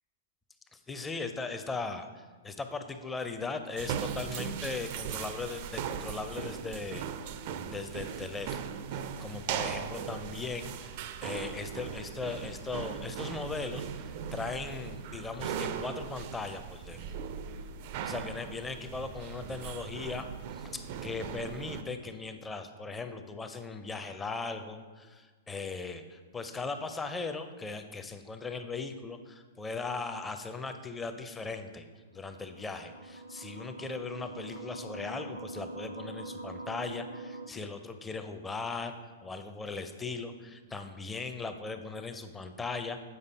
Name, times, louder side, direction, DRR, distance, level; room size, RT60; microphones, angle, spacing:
voice 1, 0.7-7.3 7.7-17.1 18.0-31.8 32.1-38.9 39.2-43.0, left 4 dB, 10° left, 8 dB, 0.5 m, -38 dB
sound 1, 3.8-21.8, right 7 dB, 45° right, 0.4 m, -38 dB
sound 2, 32.3-37.5, right 2 dB, 75° right, 0.7 m, -43 dB
8.1 x 5.2 x 4.0 m, 1.4 s
figure-of-eight pair, 105°, 0 cm